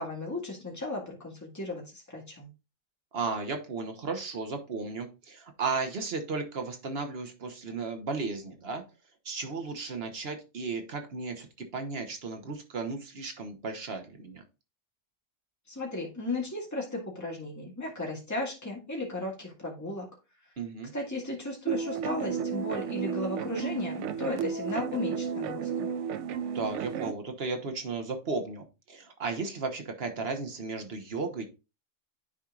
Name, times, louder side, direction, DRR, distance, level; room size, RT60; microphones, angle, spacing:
voice 1, 0.0-2.5 15.7-20.1 20.9-25.9, left 2 dB, 15° left, -2 dB, 1.9 m, -35 dB
voice 2, 3.1-8.8 9.2-14.4 20.6-20.9 26.5-31.4, right 4 dB, 55° right, 5 dB, 1.3 m, -35 dB
sound 1, 21.7-27.1, right 7 dB, 80° right, 0.9 m, -33 dB
10.5 x 4.4 x 2.4 m, 0.29 s
omnidirectional pair, 1.2 m